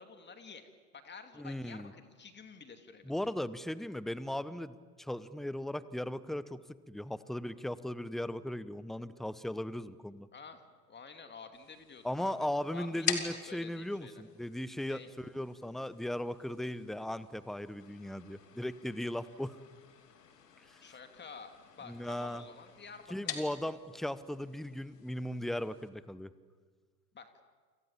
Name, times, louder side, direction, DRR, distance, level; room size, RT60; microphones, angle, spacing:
voice 1, 0.0-3.1 10.3-12.5 12.7-14.2 14.9-15.1 20.8-23.4 27.1-27.4, left 5 dB, 20° left, 6 dB, 2.7 m, -50 dB
voice 2, 1.4-1.9 3.0-6.6 6.9-10.3 12.0-19.6 21.9-22.4 23.1-26.3, left 1 dB, ahead, 16 dB, 1.0 m, -37 dB
sound 1, 11.5-25.9, left 8 dB, 70° left, 3.0 m, -45 dB
29.0 x 27.0 x 7.4 m, 1.5 s
figure-of-eight pair, 80°, 49 cm